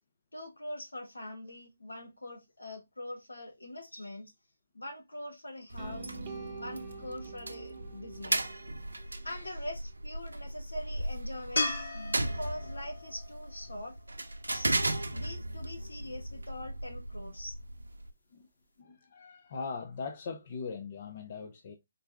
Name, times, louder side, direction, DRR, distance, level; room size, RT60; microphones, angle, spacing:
voice 1, 0.3-4.3 4.7-6.2 6.5-8.5 9.2-14.0 14.5-17.6, left 1 dB, 90° left, 1.3 m, -43 dB
sound 1, 5.7-18.1, right 1 dB, 90° right, 0.5 m, -37 dB
sound 2, 5.8-9.8, right 4 dB, 30° right, 0.8 m, -46 dB
sound 3, 11.6-14.8 18.1-18.2, left 2 dB, 70° left, 1.5 m, -36 dB
voice 2, 18.8-21.7, left 5 dB, 45° left, 0.6 m, -40 dB
3.9 x 2.3 x 3.3 m
figure-of-eight pair, 145°, 0 cm